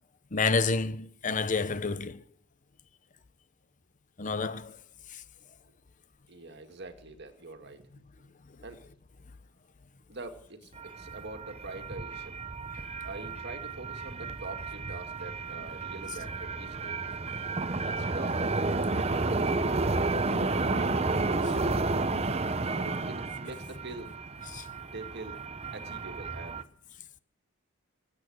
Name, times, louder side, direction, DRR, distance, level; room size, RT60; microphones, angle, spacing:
voice 1, 0.3-2.2 4.2-4.8 5.1-5.2 24.5-24.7, left 4 dB, 35° left, 0.7 m, -29 dB
voice 2, 6.3-8.0 8.6-8.8 10.1-12.4 13.0-17.0 17.8-18.4 18.9-19.7 20.4-21.7 22.6-24.1 24.9-25.4 25.7-26.6, right 2 dB, 50° right, 2.2 m, -44 dB
sound 1, 10.8-26.6, right 3 dB, 30° right, 0.8 m, -32 dB
25.0 x 8.5 x 6.4 m
head